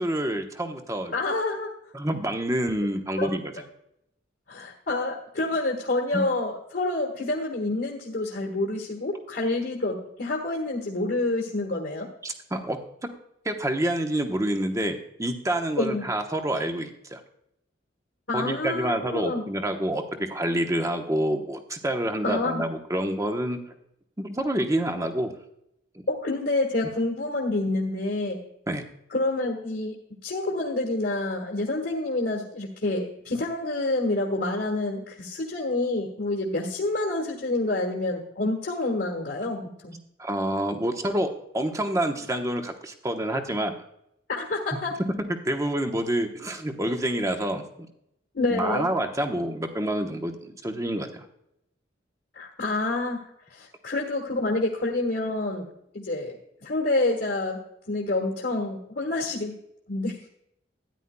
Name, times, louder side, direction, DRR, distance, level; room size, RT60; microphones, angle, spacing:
voice 1, 0.0-1.1 1.9-3.5 6.1-6.2 12.2-12.8 13.4-17.2 18.3-23.6 24.2-25.3 28.7-28.8 40.2-41.3 41.5-43.7 45.4-47.6 48.5-51.2, right 1 dB, 15° right, 5 dB, 1.0 m, -27 dB
voice 2, 1.1-1.7 3.2-3.3 4.5-12.1 15.8-16.0 18.3-19.4 22.2-22.6 26.1-28.4 29.1-29.9 30.2-39.9 44.3-44.9 48.3-48.9 52.3-53.2 53.5-55.7 55.9-56.3 56.6-57.6 57.9-59.5 59.9-60.2, left 2 dB, 60° left, -2 dB, 1.6 m, -28 dB
13.5 x 10.0 x 2.2 m, 0.77 s
head